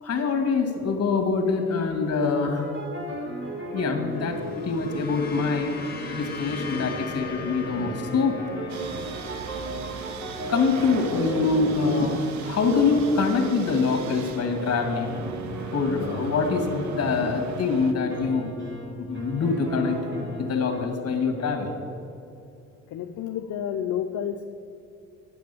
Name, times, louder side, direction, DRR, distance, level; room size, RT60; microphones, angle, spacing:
voice 1, 0.0-2.7 3.7-5.7 6.1-8.4 10.5-15.1 15.7-18.5 19.0-20.0 20.4-21.7, left 4 dB, 55° left, 4 dB, 2.1 m, -24 dB
sound 1, 2.5-5.1 5.8-20.9, right 1 dB, 40° right, 2.9 m, -37 dB
sound 2, 4.1-12.5, left 4 dB, 30° left, 2.2 m, -41 dB
sound 3, 8.7-17.9, right 6 dB, 70° right, 0.9 m, -38 dB
voice 2, 22.9-24.4, left 9 dB, 75° left, 5 dB, 0.6 m, -30 dB
9.3 x 7.7 x 6.9 m, 2.6 s
cardioid pair, 90°, 30 cm